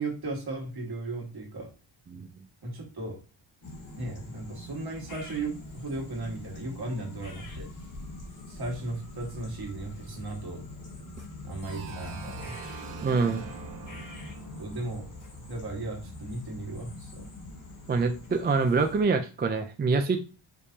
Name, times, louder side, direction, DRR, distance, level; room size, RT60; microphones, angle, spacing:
voice 1, 0.0-1.7 2.6-3.2 4.0-7.7 8.5-10.6 11.4-12.6 14.6-15.1 15.5-17.3, right 2 dB, 50° right, 0 dB, 1.8 m, -36 dB
sound 1, 3.6-19.0, left 2 dB, 40° left, 1.2 m, -43 dB
sound 2, 11.6-16.3, right 7 dB, 85° right, 1.2 m, -45 dB
voice 2, 13.0-13.4 17.9-20.2, right 4 dB, 25° right, 6 dB, 0.3 m, -25 dB
5.2 x 3.2 x 2.8 m, 0.33 s
wide cardioid pair, 140°, 48 cm